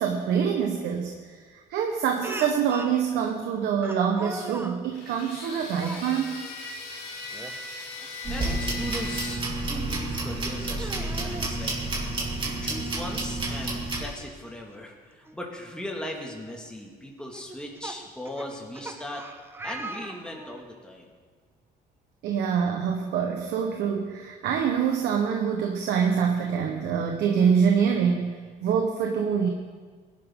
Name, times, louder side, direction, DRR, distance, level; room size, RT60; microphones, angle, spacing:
voice 1, 0.0-1.4 1.7-6.3 22.2-28.3 28.6-29.5, right 7 dB, 80° right, 2 dB, 1.3 m, -25 dB
Speech, 2.2-3.0 3.8-4.8 5.7-6.1 7.3-7.6 8.0-8.1 9.7-9.8 10.6-11.5 12.9-13.0 13.3-13.4 15.3-15.4 16.0-16.2 17.3-20.7, right 2 dB, 15° right, 1.0 m, -39 dB
sound 1, 4.9-9.4, left 3 dB, 80° left, 3.7 m, -39 dB
sound 2, 8.2-14.0, right 2 dB, 30° right, 2.8 m, -30 dB
voice 2, 8.3-11.8 12.4-19.3 19.6-21.1, left 1 dB, 5° left, -1 dB, 2.2 m, -38 dB
19.5 x 11.5 x 3.8 m, 1.5 s
cardioid pair, 110°, 17 cm